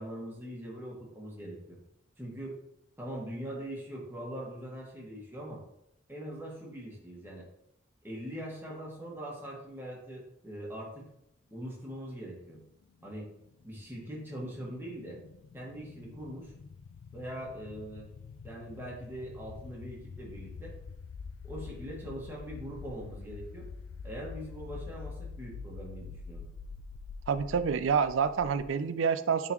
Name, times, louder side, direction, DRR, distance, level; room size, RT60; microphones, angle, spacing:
voice 1, 0.0-1.8 2.2-2.6 3.0-5.6 6.1-7.5 8.0-11.1 11.5-12.6 13.0-13.3 13.6-15.2 15.5-16.5 17.1-18.1 18.4-20.7 21.4-23.7 24.0-26.5, right 1 dB, 10° right, -4 dB, 1.7 m, -42 dB
sound 1, 12.8-28.7, left 5 dB, 70° left, 0.3 m, -46 dB
voice 2, 27.3-29.5, right 6 dB, 75° right, 12 dB, 0.4 m, -28 dB
9.0 x 3.9 x 3.0 m, 0.77 s
head